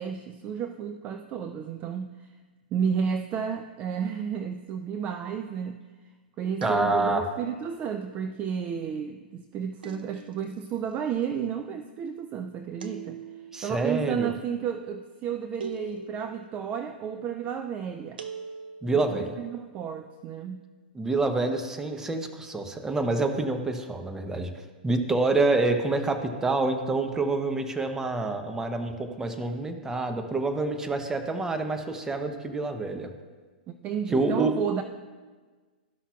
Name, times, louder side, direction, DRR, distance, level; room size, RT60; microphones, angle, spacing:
voice 1, 0.0-2.3 2.7-5.8 6.4-13.2 13.6-18.2 18.9-20.6 33.7-34.8, right 7 dB, 30° right, 7 dB, 0.4 m, -32 dB
voice 2, 6.6-7.3 13.5-14.3 18.8-19.3 20.9-24.5 24.8-33.1 34.1-34.5, right 3 dB, 10° right, 6 dB, 0.7 m, -27 dB
sound 1, 6.6-7.4 9.8-10.6 12.8-13.6 15.6-16.4 18.2-19.0, right 4 dB, 75° right, 0.7 m, -41 dB
13.0 x 5.6 x 2.4 m, 1.4 s
hypercardioid pair, 115°, 5 cm